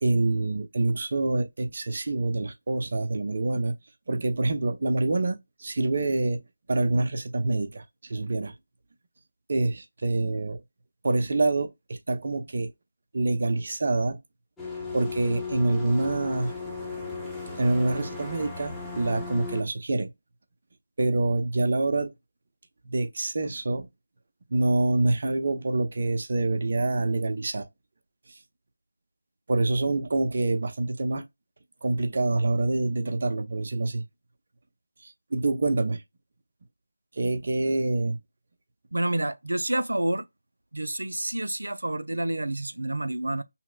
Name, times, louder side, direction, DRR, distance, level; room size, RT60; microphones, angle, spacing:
voice 1, 0.0-3.7 4.1-6.4 6.7-8.5 9.5-10.6 11.0-12.7 13.1-14.2 14.9-16.5 17.6-20.1 21.0-22.1 22.8-23.9 24.5-27.7 28.3-28.4 29.5-31.2 31.8-34.0 35.0-36.0 37.1-38.2, right 2 dB, 50° right, 0.7 m, -26 dB
sound 1, 14.6-19.6, left 4 dB, ahead, 0.8 m, -36 dB
voice 2, 38.9-40.3 40.7-43.4, right 1 dB, 80° right, 0.5 m, -28 dB
5.6 x 2.1 x 2.3 m
figure-of-eight pair, 165°, 0 cm